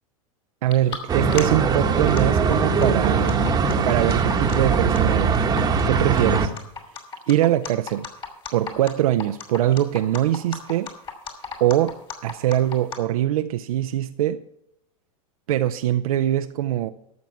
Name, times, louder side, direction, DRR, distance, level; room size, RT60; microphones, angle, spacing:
voice 1, 0.6-3.4 3.8-5.5 5.9-6.5 7.3-8.1 8.5-10.9 11.6-12.0 12.2-14.4 15.5-16.9, right 12 dB, 80° right, 0.5 m, -22 dB
sound 1, 0.7-1.0 1.3-1.4 1.9-2.2 2.5-13.0, left 6 dB, 30° left, 2.5 m, -34 dB
sound 2, 1.1-6.5, right 5 dB, 20° right, 1.0 m, -21 dB
13.5 x 6.1 x 5.8 m
hypercardioid pair, 115°, 18 cm